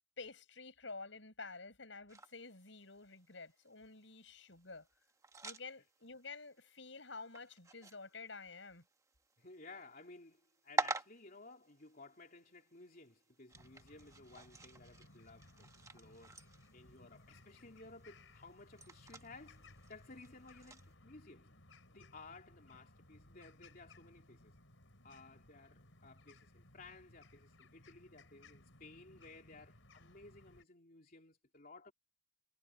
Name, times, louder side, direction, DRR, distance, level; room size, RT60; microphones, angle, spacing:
voice 1, 0.2-4.9 5.4-8.8, left 4 dB, 75° left, 6.6 m, -50 dB
sound 1, 2.1-20.9, right 3 dB, 15° right, 1.3 m, -48 dB
voice 2, 9.4-16.4 16.7-21.5 21.9-24.5 25.0-31.9, left 3 dB, 50° left, 3.2 m, -57 dB
sound 2, 13.5-30.6, left 2 dB, 90° left, 4.7 m, -62 dB
head